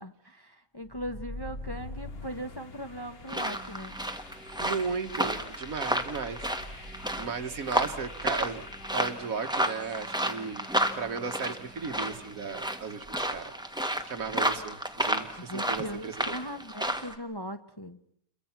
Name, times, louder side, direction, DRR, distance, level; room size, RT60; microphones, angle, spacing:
voice 1, 0.0-3.9 15.4-18.0, equal, 20° left, 6 dB, 0.9 m, -39 dB
sound 1, 0.8-12.7, left 2 dB, 45° left, 1.5 m, -46 dB
sound 2, 3.3-17.1, right 1 dB, 5° right, 1.5 m, -32 dB
voice 2, 4.6-6.4 6.7-8.6 8.9-10.7 10.9-13.5 13.8-16.4, right 5 dB, 70° right, 8 dB, 1.8 m, -36 dB
29.0 x 23.0 x 5.9 m, 0.67 s
omnidirectional pair, 1.5 m